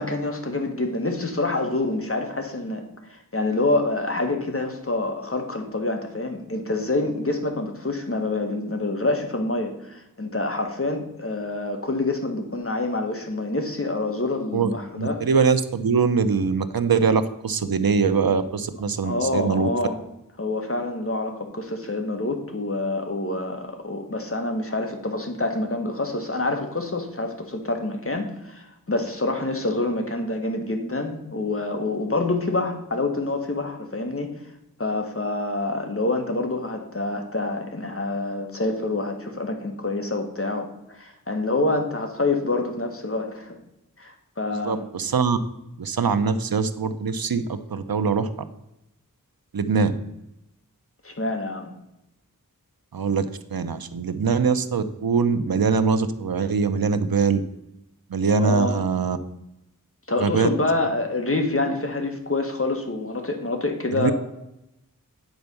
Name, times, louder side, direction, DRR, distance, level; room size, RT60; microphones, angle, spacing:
voice 1, 0.0-15.2 19.0-20.0 20.4-34.3 34.8-43.6 44.0-44.8 51.0-51.7 58.3-58.8 60.1-64.1, left 2 dB, 40° left, 4 dB, 1.6 m, -27 dB
voice 2, 15.0-19.7 44.5-45.4 45.8-48.3 49.5-49.9 52.9-57.4 58.1-59.2 60.2-60.5 63.9-64.1, right 5 dB, 85° right, 10 dB, 0.7 m, -22 dB
9.2 x 4.4 x 6.8 m, 0.86 s
wide cardioid pair, 50°, 35 cm